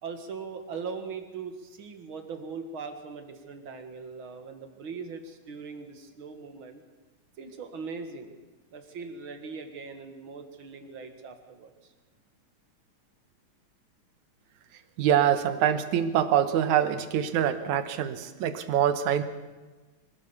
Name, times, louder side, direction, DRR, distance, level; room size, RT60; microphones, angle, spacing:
voice 1, 0.0-6.8 7.4-8.3 8.7-11.9, right 5 dB, 50° right, 6 dB, 2.4 m, -40 dB
voice 2, 15.0-19.2, right 10 dB, 85° right, 10 dB, 2.5 m, -25 dB
24.5 x 16.0 x 7.1 m, 1.3 s
omnidirectional pair, 3.3 m